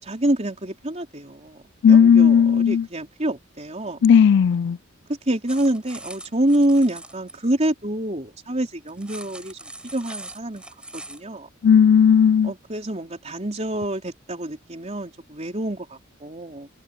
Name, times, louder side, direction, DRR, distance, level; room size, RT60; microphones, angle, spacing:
voice 1, 0.0-4.1 5.3-10.6 10.9-11.5 12.4-16.7, right 1 dB, 35° right, 3.9 m, -26 dB
voice 2, 1.8-2.8 4.0-4.8 11.6-12.5, left 7 dB, 60° left, 0.3 m, -14 dB
sound 1, 5.5-7.4 8.9-11.2, right 2 dB, 5° right, 6.2 m, -41 dB
head